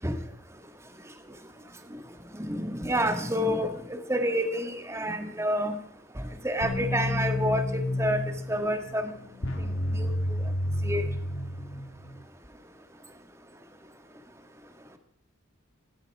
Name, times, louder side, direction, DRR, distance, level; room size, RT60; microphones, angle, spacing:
voice 1, 2.3-5.8 6.1-9.1 9.6-10.4 10.8-11.1, equal, 15° right, 7 dB, 1.6 m, -29 dB
sound 1, 6.6-12.2, left 1 dB, 65° left, 2.2 m, -30 dB
17.5 x 16.5 x 4.8 m, 0.70 s
head